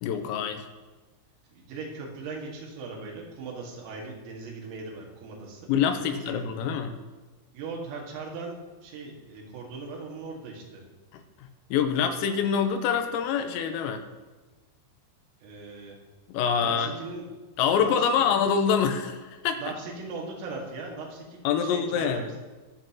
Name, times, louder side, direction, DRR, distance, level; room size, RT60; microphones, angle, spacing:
voice 1, 0.0-0.7 5.7-7.0 11.1-14.0 16.3-16.9 17.6-19.7 21.5-22.3, left 7 dB, 85° left, 6 dB, 3.6 m, -26 dB
voice 2, 1.5-6.5 7.5-10.8 15.4-16.0 16.6-17.3 17.8-18.3 19.6-22.2, right 3 dB, 80° right, -2 dB, 4.6 m, -39 dB
22.0 x 7.6 x 3.0 m, 1.3 s
omnidirectional pair, 5.9 m